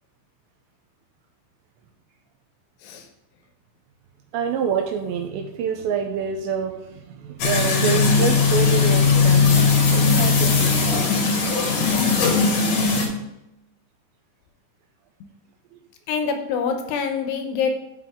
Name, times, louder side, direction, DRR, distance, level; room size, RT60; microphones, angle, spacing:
voice 1, 4.3-6.8 7.1-11.0, right 7 dB, 85° right, 3 dB, 2.7 m, -27 dB
sound 1, 7.4-13.1, left 4 dB, 65° left, 1.7 m, -18 dB
voice 2, 16.1-17.7, left 6 dB, 80° left, 6 dB, 2.5 m, -25 dB
11.5 x 5.9 x 3.6 m, 0.89 s
omnidirectional pair, 5.5 m